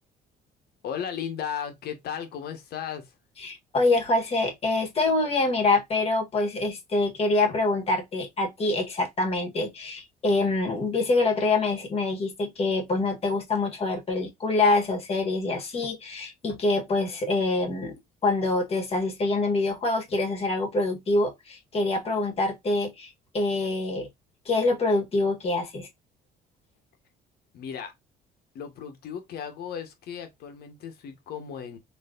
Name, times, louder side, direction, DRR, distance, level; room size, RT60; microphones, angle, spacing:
voice 1, 0.8-3.1 27.5-27.9 28.5-31.8, left 8 dB, 70° left, 1.2 m, -35 dB
voice 2, 3.4-17.9 18.2-24.1 24.4-25.9, left 2 dB, 35° left, 1.5 m, -25 dB
4.3 x 3.1 x 2.4 m
cardioid pair, 110°, 17 cm